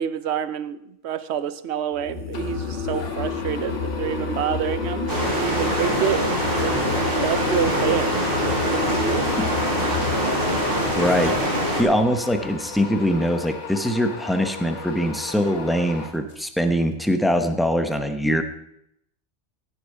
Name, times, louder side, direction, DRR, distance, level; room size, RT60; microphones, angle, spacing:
voice 1, 0.0-6.2 6.6-6.8 7.1-8.3 8.6-9.2, right 9 dB, 70° right, 14 dB, 0.9 m, -28 dB
sound 1, 1.9-13.3, left 5 dB, 65° left, 1.7 m, -31 dB
sound 2, 2.3-16.6, left 4 dB, 85° left, 1.6 m, -37 dB
sound 3, 5.1-11.8, equal, 50° right, 2.7 m, -24 dB
voice 2, 11.0-11.4 11.7-18.4, equal, ahead, 7 dB, 0.7 m, -22 dB
16.0 x 6.9 x 4.9 m, 0.77 s
omnidirectional pair, 1.2 m